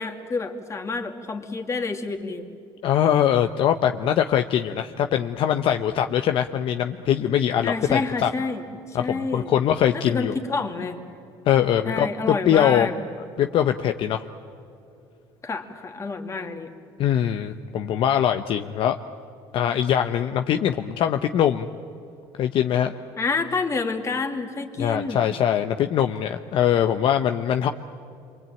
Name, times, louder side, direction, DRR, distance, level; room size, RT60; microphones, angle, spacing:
voice 1, 0.0-2.5 7.6-9.5 9.9-11.0 11.8-12.9 15.4-16.7 23.2-25.3, left 4 dB, 30° left, 4 dB, 2.7 m, -28 dB
voice 2, 2.8-8.3 8.9-10.4 11.5-12.9 13.4-14.3 17.0-19.0 19.5-21.7 22.4-23.0 24.8-27.7, left 10 dB, 60° left, 7 dB, 0.9 m, -22 dB
27.0 x 23.5 x 9.1 m, 2.6 s
cardioid pair, 115°, 10 cm